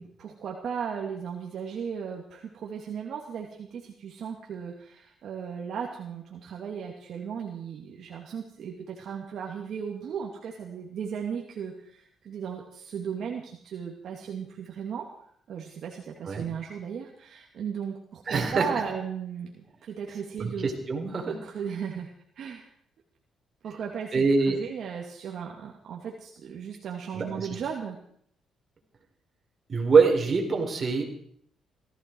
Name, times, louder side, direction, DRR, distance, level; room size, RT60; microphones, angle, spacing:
voice 1, 0.0-15.1 15.5-20.7 21.3-22.1 22.4-22.7 23.6-28.0, right 7 dB, 65° right, -1 dB, 2.5 m, -36 dB
voice 2, 18.3-18.7 20.4-21.3 24.1-24.6 27.1-27.5 29.7-31.0, right 4 dB, 40° right, 2 dB, 4.4 m, -24 dB
18.0 x 14.5 x 4.7 m, 0.65 s
cardioid pair, 90°, 0 cm